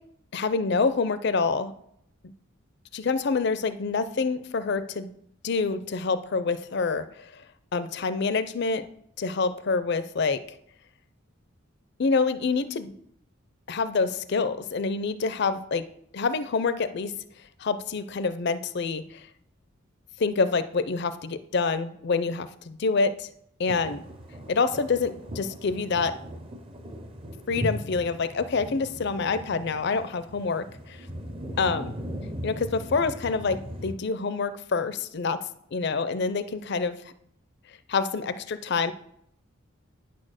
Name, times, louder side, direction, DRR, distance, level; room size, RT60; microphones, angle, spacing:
voice 1, 0.3-1.7 2.9-5.1 5.4-7.4 7.7-8.8 9.2-10.4 12.0-12.9 13.7-15.8 16.1-17.1 17.6-19.3 20.2-23.3 23.6-24.0 24.5-26.1 27.5-31.1 31.6-31.9 32.4-35.4 35.7-37.0 37.9-38.9, left 4 dB, 55° left, 13 dB, 0.5 m, -27 dB
sound 1, 23.7-33.9, equal, 25° right, 0.6 m, -38 dB
9.3 x 4.3 x 6.4 m, 0.73 s
head